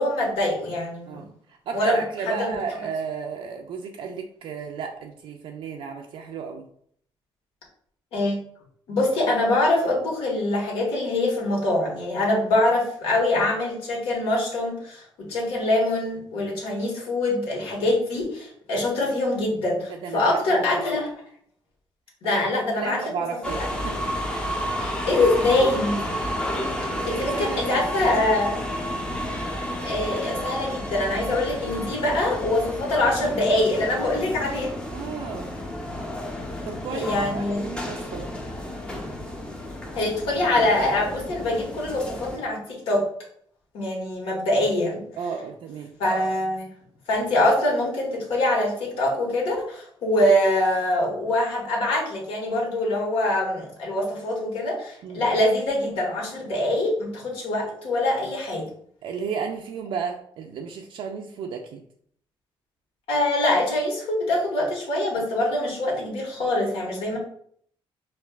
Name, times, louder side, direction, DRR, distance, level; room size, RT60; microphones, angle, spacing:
voice 1, 0.0-1.2 1.7-2.5 8.1-8.4 8.9-21.1 22.2-23.0 24.8-26.2 27.1-28.7 29.8-34.7 36.9-37.7 39.9-43.1 43.7-45.0 46.0-46.7 47.1-58.6 63.1-67.2, left 1 dB, 90° left, -3 dB, 1.4 m, -24 dB
voice 2, 1.1-6.7 19.9-20.7 22.2-22.4 22.7-24.6 25.1-25.7 26.9-27.8 28.2-28.3 34.9-35.6 36.7-38.3 45.2-45.9 55.0-55.2 59.0-61.8, right 6 dB, 65° right, 2 dB, 0.4 m, -34 dB
sound 1, 23.4-42.4, equal, 10° left, 0.5 m, -31 dB
5.2 x 2.4 x 2.3 m, 0.64 s
cardioid pair, 150°, 9 cm